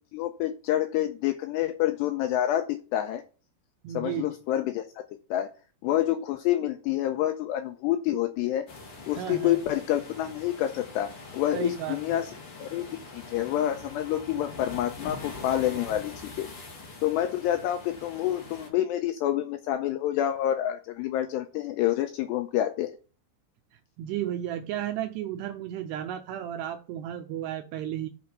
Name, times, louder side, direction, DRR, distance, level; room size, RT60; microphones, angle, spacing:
voice 1, 0.1-3.2 3.9-5.0 5.3-5.5 5.8-8.7 9.1-12.3 12.6-12.9 13.1-16.5 17.0-22.9, left 12 dB, 85° left, 8 dB, 2.4 m, -28 dB
voice 2, 3.8-4.3 9.1-9.6 11.5-12.2 23.7-28.1, right 11 dB, 90° right, 6 dB, 2.4 m, -33 dB
sound 1, 8.7-18.7, left 3 dB, 45° left, 1.9 m, -43 dB
8.1 x 4.8 x 6.7 m, 0.36 s
omnidirectional pair, 5.5 m